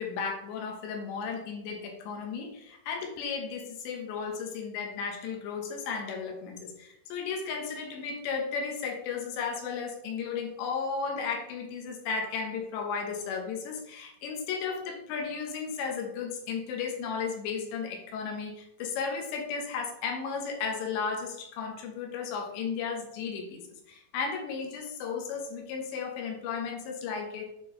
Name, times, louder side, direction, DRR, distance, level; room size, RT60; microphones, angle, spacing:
voice 1, 0.0-27.4, left 5 dB, 75° left, 2 dB, 3.2 m, -34 dB
8.9 x 4.5 x 3.8 m, 0.79 s
omnidirectional pair, 5.3 m